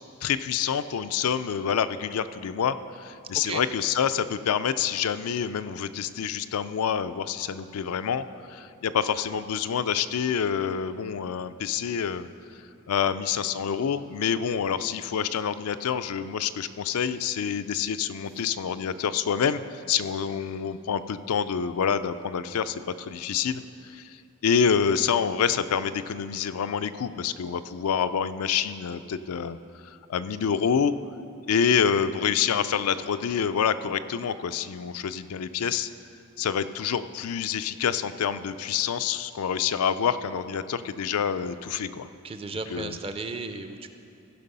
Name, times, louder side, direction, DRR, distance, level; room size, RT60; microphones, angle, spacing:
voice 1, 0.2-8.2 8.5-12.3 12.9-19.6 19.9-23.6 23.9-24.2 24.4-29.6 29.8-30.9 31.4-35.9 36.4-42.1 42.7-42.9, left 7 dB, 90° left, 11 dB, 0.4 m, -27 dB
voice 2, 42.2-43.9, right 3 dB, 25° right, 8 dB, 0.5 m, -35 dB
15.5 x 5.3 x 5.4 m, 2.8 s
head